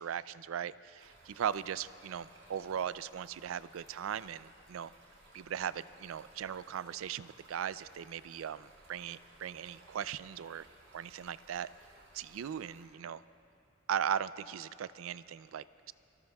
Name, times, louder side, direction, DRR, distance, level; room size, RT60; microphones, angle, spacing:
voice 1, 0.0-4.9 5.3-10.7 10.9-11.7 12.1-13.2 13.9-15.9, right 8 dB, 90° right, 17 dB, 0.4 m, -38 dB
Stream, 1.0-12.8, right 2 dB, 75° right, 4.2 m, -60 dB
26.0 x 18.0 x 2.3 m, 2.7 s
head